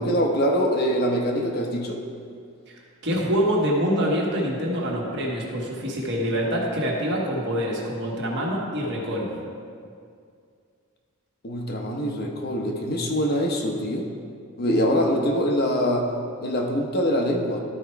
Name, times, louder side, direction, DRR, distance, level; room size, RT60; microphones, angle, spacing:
voice 1, 0.0-2.0 11.4-14.1 14.6-16.1 16.4-17.6, equal, 45° left, 2 dB, 0.8 m, -24 dB
voice 2, 2.7-9.3, equal, 55° right, -2 dB, 1.5 m, -25 dB
12.5 x 4.5 x 4.5 m, 2.3 s
head